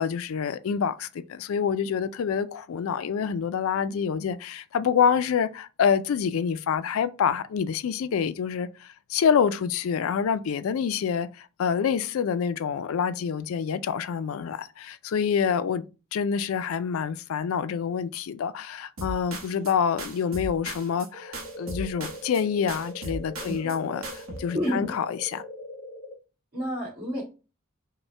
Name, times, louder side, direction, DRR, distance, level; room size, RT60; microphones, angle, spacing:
voice 1, 0.0-25.4, left 7 dB, 70° left, 0.3 m, -27 dB
sound 1, 19.0-19.7 20.0-21.1 21.3-22.4 22.7-23.8 24.0-24.4, right 2 dB, 70° right, 0.9 m, -37 dB
sound 2, 21.1-26.2, left 1 dB, 25° left, 0.6 m, -42 dB
voice 2, 23.4-23.7 24.5-24.9 26.5-27.2, equal, 50° right, 2.0 m, -30 dB
5.2 x 2.1 x 3.2 m
head